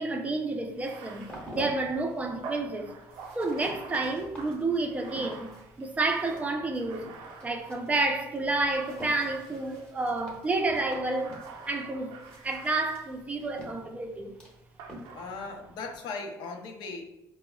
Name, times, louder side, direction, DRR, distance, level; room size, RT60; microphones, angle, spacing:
voice 1, 0.0-2.9 3.3-5.5 5.8-7.1 7.4-11.3 11.7-12.1 12.4-14.3, right 2 dB, 20° right, 0.4 m, -30 dB
Bathtub (filling or washing), 0.7-8.1 8.6-9.9 10.5-13.6 14.8-15.8, right 5 dB, 75° right, 0.4 m, -47 dB
sound 1, 0.8-15.5, equal, 10° left, 0.9 m, -49 dB
voice 2, 15.1-17.0, left 4 dB, 70° left, 0.6 m, -38 dB
4.7 x 2.0 x 2.2 m
cardioid pair, 115°, 8 cm